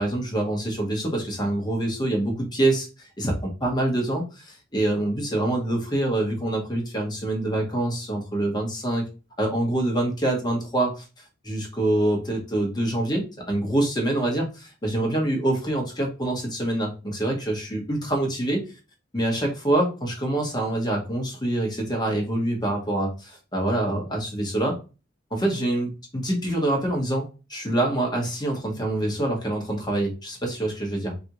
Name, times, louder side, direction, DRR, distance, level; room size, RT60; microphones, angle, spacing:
voice 1, 0.0-9.1 9.4-11.0 11.4-18.6 19.1-24.8 25.3-31.2, right 1 dB, 20° left, 2 dB, 0.9 m, -25 dB
3.4 x 2.5 x 2.9 m, 0.31 s
head